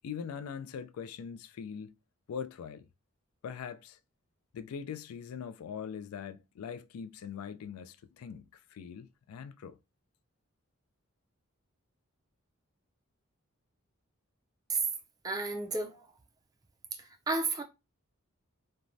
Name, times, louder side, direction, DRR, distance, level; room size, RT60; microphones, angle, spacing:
voice 1, 0.0-1.9 2.3-2.8 3.4-4.0 4.5-9.8, left 7 dB, 90° left, 0.3 m, -42 dB
voice 2, 15.2-16.0 17.3-17.6, right 3 dB, 15° right, 0.3 m, -31 dB
3.0 x 2.2 x 2.5 m
head